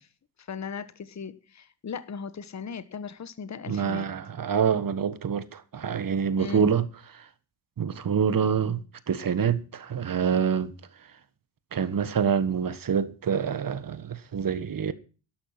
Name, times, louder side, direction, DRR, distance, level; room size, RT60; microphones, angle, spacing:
voice 1, 0.4-4.1 6.3-6.8, left 6 dB, 35° left, 1.4 m, -37 dB
voice 2, 3.7-6.9 7.8-8.8 9.1-10.7 11.7-14.9, right 7 dB, 45° right, 1.6 m, -26 dB
12.5 x 12.0 x 6.0 m
cardioid pair, 85°, 46 cm